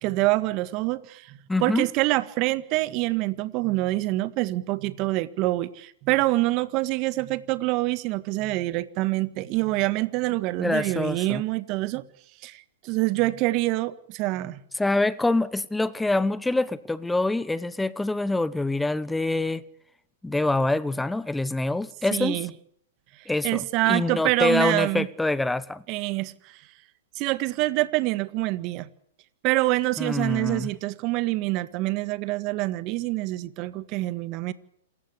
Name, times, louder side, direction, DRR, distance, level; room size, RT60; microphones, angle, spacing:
voice 1, 0.0-12.0 12.4-14.6 22.1-22.5 23.4-25.1 25.9-26.6 27.1-28.9 29.4-34.5, right 19 dB, 40° right, 1.7 m, -26 dB
voice 2, 1.5-1.9 10.6-11.4 14.8-19.6 20.2-22.4 23.3-25.8 30.0-30.7, left 2 dB, 5° left, 1.0 m, -25 dB
27.5 x 15.0 x 8.4 m
hypercardioid pair, 125°, 0 cm